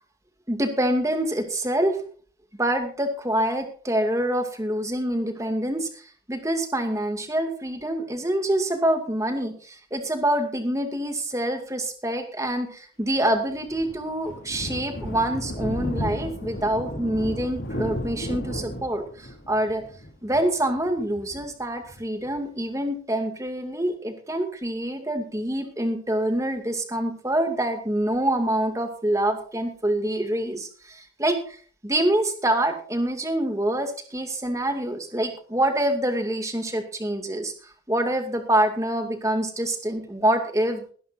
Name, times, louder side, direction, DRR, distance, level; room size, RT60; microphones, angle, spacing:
voice 1, 0.5-2.0 2.6-19.8 20.2-31.6 31.8-40.9, right 1 dB, 20° right, 5 dB, 2.3 m, -26 dB
Thunder, 13.2-22.4, equal, 85° left, 2.8 m, -34 dB
21.5 x 11.5 x 2.7 m, 0.42 s
head